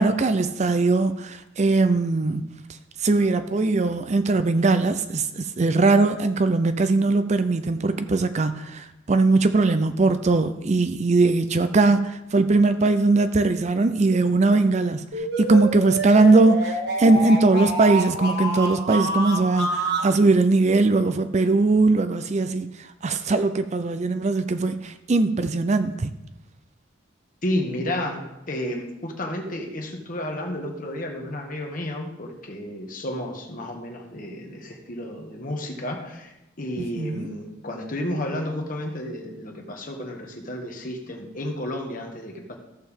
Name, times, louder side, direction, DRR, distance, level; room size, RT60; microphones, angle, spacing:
voice 1, 0.0-2.4 3.0-26.1 36.8-37.3, right 3 dB, 35° right, 10 dB, 0.4 m, -20 dB
sound 1, 15.1-20.1, right 1 dB, 60° right, 1.6 m, -27 dB
voice 2, 27.4-42.5, left 1 dB, 45° left, 2 dB, 1.5 m, -32 dB
14.5 x 6.7 x 3.6 m, 0.92 s
head